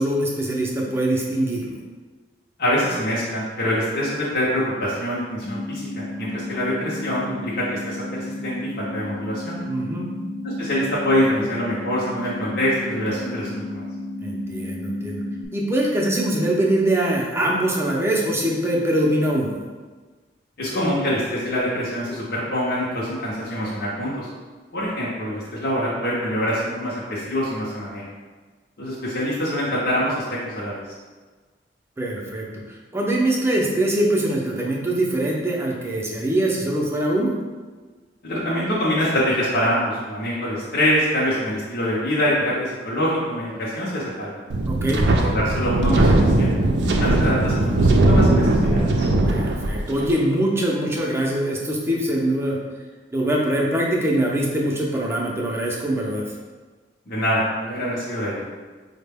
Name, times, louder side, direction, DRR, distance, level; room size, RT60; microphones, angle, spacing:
voice 1, 0.0-1.7 9.6-10.1 14.2-15.2 15.5-19.6 32.0-37.3 44.7-45.0 49.2-52.6 53.1-56.3, right 1 dB, 15° right, -3 dB, 0.6 m, -23 dB
voice 2, 2.6-9.6 10.4-13.8 20.6-24.3 24.7-28.0 28.8-30.8 38.2-44.3 45.1-46.5 47.0-49.1 57.1-58.5, equal, 55° left, -7 dB, 0.7 m, -25 dB
sound 1, 5.5-15.5, left 1 dB, 35° left, 0.4 m, -33 dB
Wind, 44.5-50.1, right 2 dB, 70° right, 0.4 m, -19 dB
4.9 x 2.1 x 3.4 m, 1.4 s
head